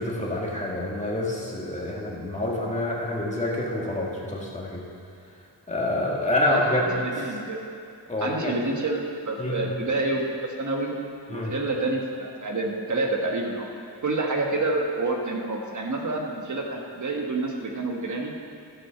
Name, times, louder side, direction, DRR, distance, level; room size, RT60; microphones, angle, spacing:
voice 1, 0.0-4.8 5.7-6.8 8.1-8.5 9.4-9.6 11.3-11.5, left 1 dB, 15° left, -4 dB, 1.8 m, -27 dB
voice 2, 6.4-7.6 8.2-11.0 11.3-13.7 14.0-18.3, right 2 dB, 45° right, 0 dB, 1.4 m, -28 dB
13.5 x 6.3 x 5.8 m, 2.5 s
wide cardioid pair, 125°, 43 cm